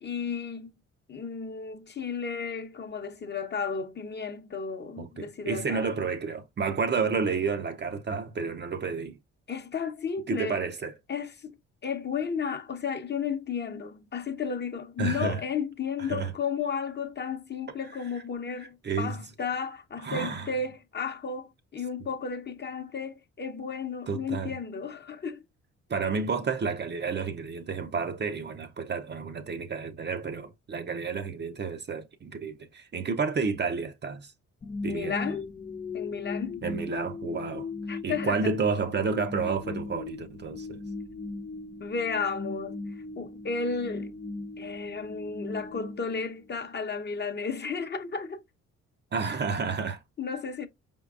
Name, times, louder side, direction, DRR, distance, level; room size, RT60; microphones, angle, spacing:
voice 1, 0.0-0.7 1.1-5.9 9.5-10.6 11.1-11.5 11.8-25.4 34.9-35.5 35.9-36.6 37.9-38.5 41.8-44.1 44.6-48.4 50.2-50.7, left 5 dB, 35° left, 0.8 m, -33 dB
voice 2, 5.0-9.2 10.3-11.0 15.0-15.4 16.1-16.3 18.8-19.2 20.0-20.5 24.1-24.6 25.9-34.3 34.8-35.2 36.6-37.7 38.0-40.8 49.1-50.0, right 5 dB, 35° right, 0.6 m, -30 dB
sound 1, 34.6-46.8, left 3 dB, 20° left, 0.4 m, -38 dB
5.0 x 3.6 x 2.4 m
cardioid pair, 90°, 30 cm